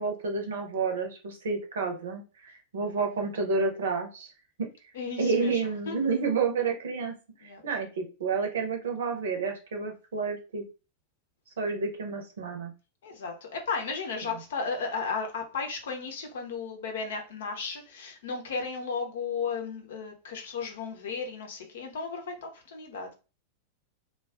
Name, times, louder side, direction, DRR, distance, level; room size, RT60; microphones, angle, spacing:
voice 1, 0.0-4.3 4.6-4.7 5.2-7.1 7.6-10.6 11.6-12.7, right 4 dB, 65° right, 0.7 m, -30 dB
voice 2, 4.9-6.0 7.4-7.6 13.0-23.1, left 5 dB, 60° left, 0.7 m, -34 dB
2.3 x 2.3 x 3.4 m
figure-of-eight pair, 90°, 0 cm